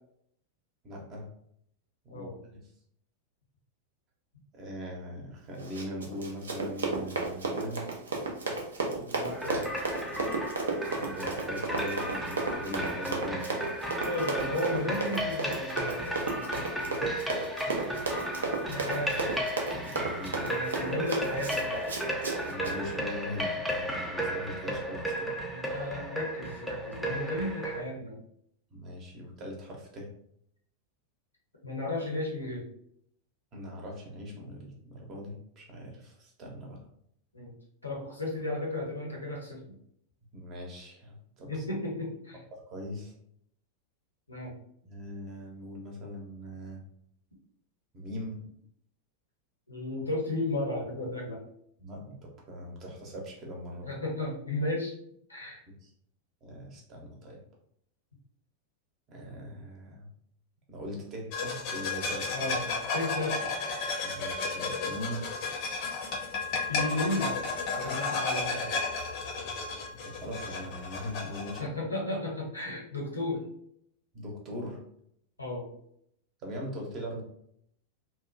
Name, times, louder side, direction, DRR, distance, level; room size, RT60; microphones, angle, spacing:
voice 1, 0.8-1.3 2.0-2.3 4.5-7.9 10.9-13.6 19.8-20.8 22.4-25.3 28.7-30.1 33.5-36.8 40.3-41.6 42.5-43.1 44.9-46.8 47.9-48.4 51.8-53.9 55.7-55.9 56.4-57.4 59.1-60.1 60.7-62.5 64.0-65.3 69.9-71.8 74.1-74.8 76.4-77.2, equal, 35° right, -1 dB, 0.8 m, -40 dB
Run, 5.6-22.8, right 3 dB, 70° right, 0.5 m, -34 dB
voice 2, 8.9-9.6 14.0-17.0 18.7-19.3 20.4-21.7 25.4-28.2 31.6-32.7 37.3-37.5 37.8-39.8 41.4-42.4 44.3-44.5 49.7-51.4 53.8-54.9 55.3-55.6 62.3-63.5 66.7-67.4 67.8-68.7 71.6-73.4 75.4-75.7, left 1 dB, 80° left, -2 dB, 0.8 m, -34 dB
sound 1, 9.3-27.8, equal, ahead, 0.5 m, -34 dB
sound 2, 61.3-71.6, left 4 dB, 45° left, 0.7 m, -33 dB
2.8 x 2.2 x 2.5 m, 0.70 s
figure-of-eight pair, 90°, 0 cm